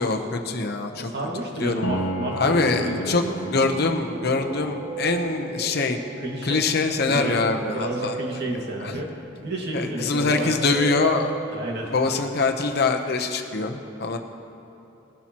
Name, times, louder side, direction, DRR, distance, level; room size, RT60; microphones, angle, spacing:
voice 1, 0.0-1.1 1.6-1.8 2.3-3.2 3.5-6.0 6.4-8.1 8.8-8.9 9.7-11.3 11.9-14.2, left 3 dB, 55° left, 5 dB, 0.8 m, -24 dB
voice 2, 1.0-3.6 6.2-6.6 7.1-7.4 7.7-9.1 9.4-10.7 11.5-11.9, right 1 dB, 55° right, -1 dB, 1.9 m, -31 dB
Piano, 1.8-11.4, equal, 80° left, 0.9 m, -36 dB
sound 1, 3.7-12.4, right 5 dB, 25° right, 1.3 m, -37 dB
20.0 x 11.5 x 3.0 m, 3.0 s
head